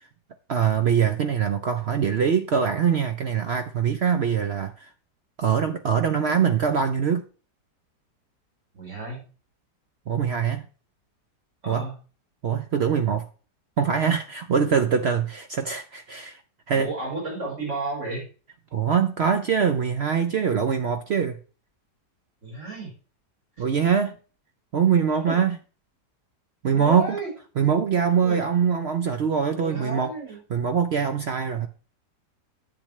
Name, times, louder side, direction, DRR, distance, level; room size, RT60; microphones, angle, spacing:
voice 1, 0.5-4.9 5.4-7.2 10.1-10.7 11.7-11.9 12.4-13.2 13.8-16.4 16.7-16.9 18.7-21.4 23.6-24.1 24.7-25.6 26.6-27.2 27.6-30.1 30.5-31.7, right 7 dB, 60° right, 0.6 m, -23 dB
voice 2, 8.7-9.3 11.6-12.0 16.7-18.3 22.4-22.9 25.3-25.4 26.7-27.3 28.2-28.4 29.5-30.4, right 2 dB, 45° right, 4.7 m, -32 dB
10.5 x 7.8 x 3.1 m
omnidirectional pair, 1.8 m